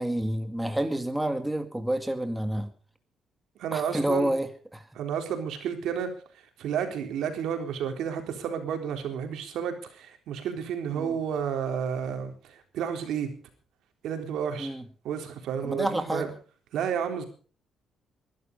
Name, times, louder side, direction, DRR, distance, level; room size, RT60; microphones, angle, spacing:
voice 1, 0.0-2.7 3.7-4.8 10.9-11.1 14.6-14.8 15.6-16.3, right 1 dB, 10° right, 8 dB, 2.1 m, -29 dB
voice 2, 3.6-4.3 4.9-6.1 6.3-13.3 14.0-14.7 15.0-16.3 16.7-17.3, right 7 dB, 80° right, 5 dB, 3.8 m, -31 dB
21.5 x 12.0 x 5.3 m, 0.41 s
cardioid pair, 90°, 0 cm